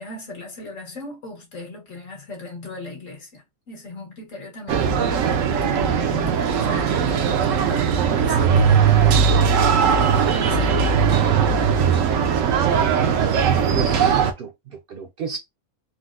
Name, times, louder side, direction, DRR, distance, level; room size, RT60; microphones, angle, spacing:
voice 1, 0.0-9.6 9.8-11.1, left 2 dB, 80° left, 1.7 m, -37 dB
sound 1, 4.7-14.3, right 6 dB, 80° right, 1.0 m, -19 dB
voice 2, 13.7-15.4, right 6 dB, 60° right, 0.6 m, -32 dB
4.0 x 2.0 x 2.4 m
omnidirectional pair, 1.3 m